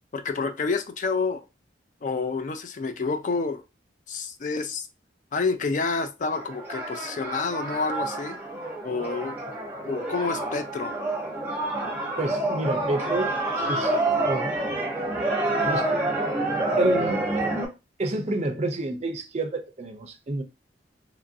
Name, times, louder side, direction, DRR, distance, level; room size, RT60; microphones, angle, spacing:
voice 1, 0.1-1.4 2.0-3.6 4.1-4.9 5.3-8.4 8.8-9.4 9.9-10.9, left 4 dB, 45° left, 0.4 m, -28 dB
sound 1, 6.3-17.7, right 2 dB, 10° right, 0.8 m, -28 dB
voice 2, 12.2-13.3 13.7-14.0 14.2-14.6 15.6-16.0 16.8-17.2 18.0-20.4, right 2 dB, 35° right, 0.4 m, -29 dB
3.0 x 2.5 x 2.6 m
head